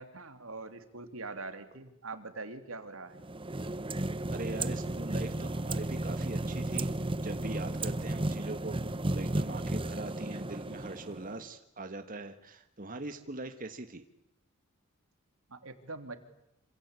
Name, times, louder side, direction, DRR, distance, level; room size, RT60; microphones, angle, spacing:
voice 1, 0.0-3.2 15.5-16.2, right 3 dB, 80° right, 8 dB, 3.0 m, -43 dB
sound 1, 3.2-11.4, right 1 dB, 25° right, 1.1 m, -34 dB
voice 2, 4.3-6.9 7.2-8.8 9.1-14.0, right 2 dB, 40° right, 7 dB, 1.6 m, -41 dB
27.0 x 26.5 x 8.3 m, 0.82 s
head